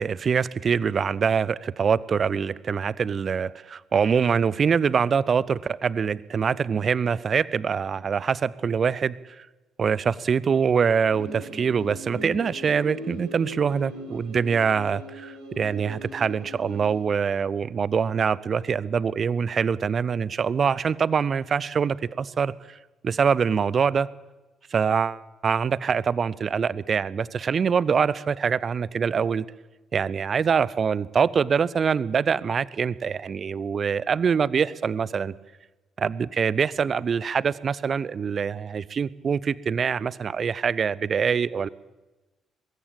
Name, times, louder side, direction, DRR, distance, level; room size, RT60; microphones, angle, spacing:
voice 1, 0.0-9.5 9.8-22.8 23.0-24.1 24.7-29.4 29.9-35.3 36.0-41.7, right 6 dB, 40° right, 22 dB, 0.7 m, -24 dB
sound 1, 11.0-17.0, equal, 70° right, 6.8 m, -40 dB
22.0 x 16.0 x 8.8 m, 1.1 s
figure-of-eight pair, 45°, 0 cm